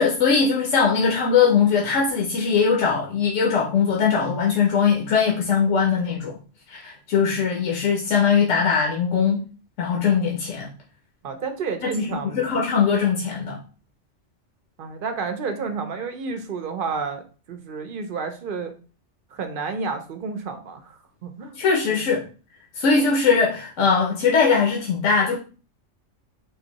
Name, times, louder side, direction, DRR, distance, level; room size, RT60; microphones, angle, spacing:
voice 1, 0.0-6.4 6.7-9.4 9.8-10.7 12.0-13.6 21.6-22.2 22.7-25.4, left 6 dB, 75° left, -2 dB, 1.1 m, -20 dB
voice 2, 11.2-12.5 14.8-18.7 19.3-21.6 21.9-22.1, right 5 dB, 55° right, 7 dB, 0.7 m, -31 dB
3.9 x 2.6 x 3.9 m, 0.37 s
omnidirectional pair, 1.3 m